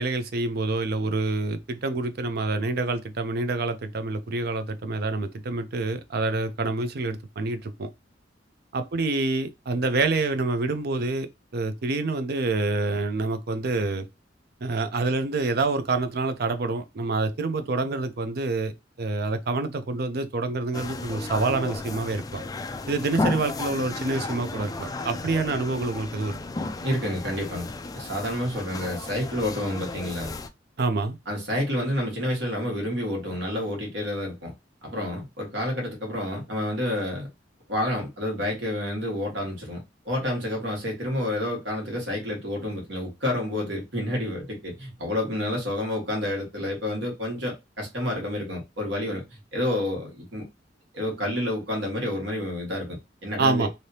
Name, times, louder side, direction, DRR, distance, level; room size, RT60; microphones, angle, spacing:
voice 1, 0.0-7.9 8.7-11.3 11.5-14.1 14.6-18.7 19.0-22.4 22.9-26.4 30.8-31.2 53.4-53.7, right 3 dB, 60° right, 0.5 m, -27 dB
sound 1, 20.7-30.5, left 2 dB, 20° left, 0.3 m, -33 dB
voice 2, 26.8-30.4 31.3-34.5 34.8-37.3 37.7-39.8 40.0-50.4 50.9-53.7, left 1 dB, 80° right, 1.6 m, -29 dB
3.2 x 2.7 x 2.7 m
head